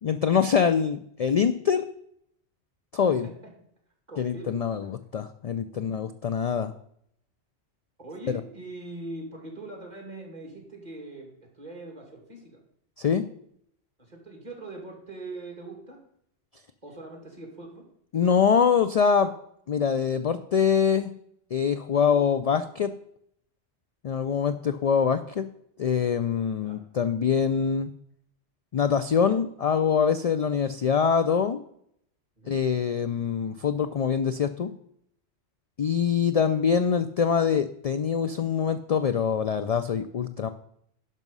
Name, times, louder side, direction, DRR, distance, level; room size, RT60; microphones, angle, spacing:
voice 1, 0.0-1.9 2.9-3.3 4.2-6.7 8.3-8.4 13.0-13.3 18.1-19.3 19.7-21.1 21.5-22.9 24.0-25.4 25.8-27.9 28.7-31.6 32.5-34.7 35.8-40.5, left 7 dB, 60° left, 11 dB, 0.4 m, -24 dB
voice 2, 4.1-4.6 8.0-12.6 14.0-16.0 16.8-17.8 26.6-26.8 32.4-32.6, right 2 dB, 40° right, 1 dB, 2.5 m, -42 dB
11.0 x 6.1 x 5.4 m, 0.72 s
omnidirectional pair, 1.2 m